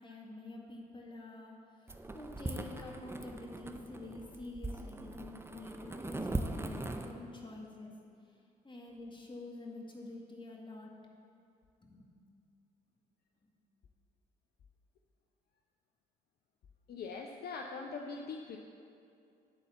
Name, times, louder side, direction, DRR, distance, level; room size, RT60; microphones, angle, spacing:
voice 1, 0.0-7.9 8.6-10.9 11.8-12.1, left 2 dB, 25° left, -1 dB, 2.0 m, -47 dB
sound 1, 1.9-7.1, right 2 dB, 10° right, 0.7 m, -40 dB
voice 2, 16.9-18.6, left 4 dB, 55° left, 2 dB, 0.7 m, -42 dB
11.0 x 4.2 x 7.3 m, 2.5 s
hypercardioid pair, 50°, 20 cm